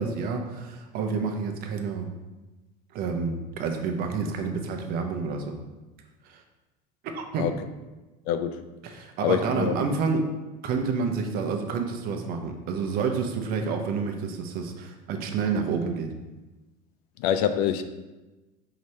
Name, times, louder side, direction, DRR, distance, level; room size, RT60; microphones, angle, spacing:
voice 1, 0.0-2.1 2.9-5.6 6.2-6.4 7.1-7.5 8.8-10.2 10.6-16.1, right 5 dB, 50° right, 4 dB, 0.6 m, -29 dB
voice 2, 8.3-8.7 9.2-9.8 17.2-17.8, left 9 dB, 80° left, 10 dB, 0.4 m, -25 dB
4.9 x 2.8 x 3.2 m, 1.1 s
supercardioid pair, 130°, 20 cm